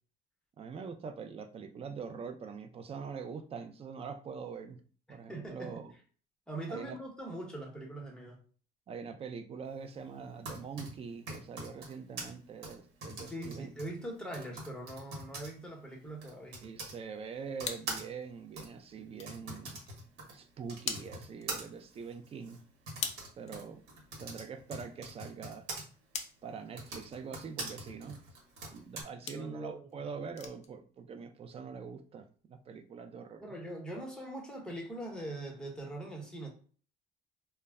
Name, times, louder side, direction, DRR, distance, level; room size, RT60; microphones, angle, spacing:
voice 1, 0.6-4.8 5.1-5.9 6.7-7.0 8.9-13.7 16.6-19.8 20.3-22.6 23.4-23.8 24.2-25.7 26.4-28.2 28.7-33.5, right 6 dB, 35° right, 0.4 m, -43 dB
voice 2, 5.1-5.8 6.5-8.4 13.3-16.6 29.3-29.9 33.4-36.5, right 1 dB, 5° left, 0.9 m, -42 dB
Typing, 10.2-17.0 17.6-25.8 26.6-29.0, right 2 dB, 85° right, 1.0 m, -44 dB
sound 1, 16.1-27.2 27.6-27.8 28.2-28.6 29.3-29.5 29.9-30.0 30.3-30.7 31.0-31.3 31.6-31.7 32.1-32.2, left 6 dB, 40° left, 0.5 m, -45 dB
2.1 x 2.0 x 3.4 m
cardioid pair, 110°, 17 cm